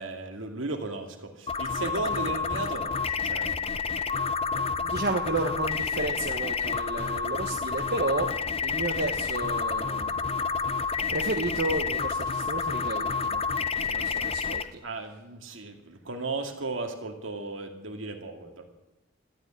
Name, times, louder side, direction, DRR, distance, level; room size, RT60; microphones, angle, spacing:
voice 1, 0.0-3.8 14.8-18.6, right 3 dB, 75° right, 4 dB, 2.4 m, -35 dB
sound 1, 1.5-14.6, left 5 dB, 30° left, 0.7 m, -29 dB
voice 2, 4.6-8.3 8.6-10.4 10.8-13.4 13.8-14.8, right 2 dB, 55° right, 3 dB, 1.2 m, -32 dB
13.0 x 10.0 x 10.0 m, 0.97 s
head